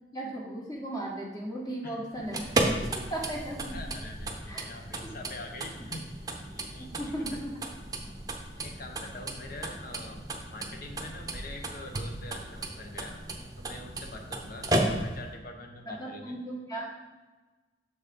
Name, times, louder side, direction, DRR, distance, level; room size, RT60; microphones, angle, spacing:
voice 1, 0.0-2.5 2.8-3.8 4.5-4.6 5.0-5.1 6.8-7.5 15.9-16.9, right 1 dB, 20° left, -2 dB, 1.5 m, -36 dB
voice 2, 1.8-2.2 3.7-7.4 8.6-13.2 13.6-16.4, left 2 dB, 50° left, 3 dB, 1.0 m, -45 dB
sound 1, 2.1-15.3, right 2 dB, 20° right, 0.8 m, -34 dB
6.9 x 4.3 x 5.3 m, 1.2 s
head